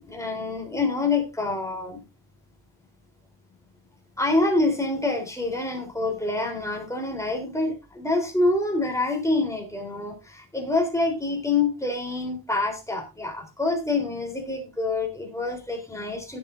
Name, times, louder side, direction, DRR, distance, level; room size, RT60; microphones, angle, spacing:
voice 1, 0.0-2.0 4.2-16.4, left 2 dB, 5° left, 1 dB, 3.5 m, -26 dB
17.0 x 7.7 x 2.6 m, 0.25 s
wide cardioid pair, 130°, 45 cm